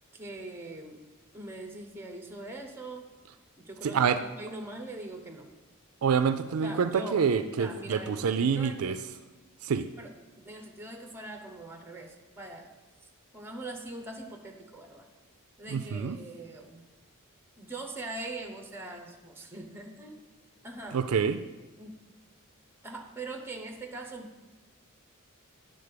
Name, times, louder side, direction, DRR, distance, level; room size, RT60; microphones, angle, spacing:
voice 1, 0.1-1.0 1.3-3.1 3.6-5.5 6.6-7.2 7.6-9.0 10.0-10.1 10.4-12.7 13.3-15.1 15.6-16.8 17.6-20.2 20.6-21.0 21.8-22.0 22.8-24.4, right 2 dB, 10° right, 4 dB, 0.9 m, -42 dB
voice 2, 3.8-4.2 6.0-9.0 9.6-9.9 15.7-16.2 20.9-21.4, right 6 dB, 70° right, 11 dB, 0.4 m, -27 dB
9.5 x 3.8 x 6.7 m, 1.2 s
head